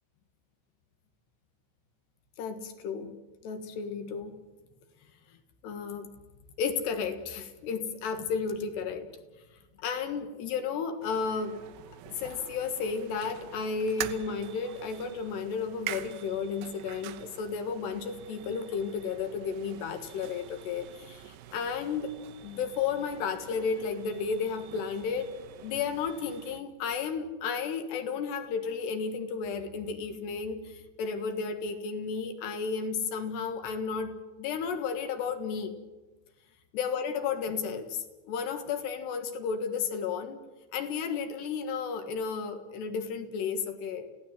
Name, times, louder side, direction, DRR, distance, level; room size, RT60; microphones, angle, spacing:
voice 1, 2.4-3.2 3.4-4.4 5.6-6.1 6.6-9.1 9.8-11.6 11.9-22.1 22.4-25.4 25.6-35.7 36.7-40.4 40.7-44.1, left 5 dB, 70° left, 7 dB, 3.6 m, -33 dB
sound 1, 11.0-26.6, right 12 dB, 75° right, 2.8 m, -45 dB
29.5 x 17.0 x 7.5 m, 1.2 s
omnidirectional pair, 5.4 m